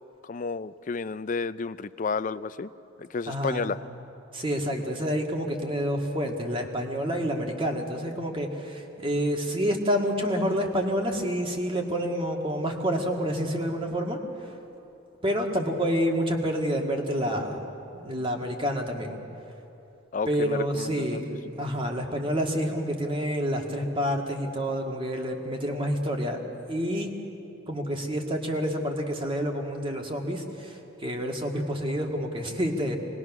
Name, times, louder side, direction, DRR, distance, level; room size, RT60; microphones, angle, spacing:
voice 1, 0.2-2.7 3.0-3.8 20.1-21.2, left 4 dB, 40° left, 14 dB, 0.4 m, -31 dB
voice 2, 3.3-3.7 4.3-14.6 15.2-17.6 17.9-19.2 20.3-26.4 26.7-27.1 27.7-33.0, equal, 25° right, 1 dB, 1.9 m, -28 dB
25.5 x 20.5 x 6.1 m, 2.9 s
head